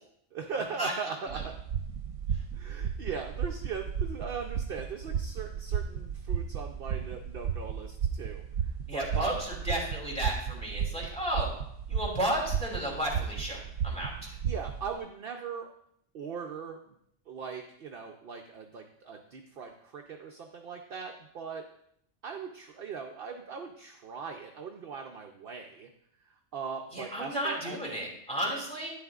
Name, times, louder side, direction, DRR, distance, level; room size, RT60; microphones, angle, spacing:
voice 1, 0.3-1.5 2.5-9.5 14.4-15.7 16.1-16.9 17.3-21.6 22.2-25.9 26.3-27.8, right 6 dB, 55° right, 4 dB, 0.8 m, -39 dB
sound 1, 1.3-15.0, right 7 dB, 85° right, 0.9 m, -34 dB
voice 2, 8.9-11.5 11.9-14.3 26.9-28.9, equal, 5° left, -4 dB, 2.8 m, -33 dB
11.5 x 9.4 x 2.4 m, 0.72 s
omnidirectional pair, 1.3 m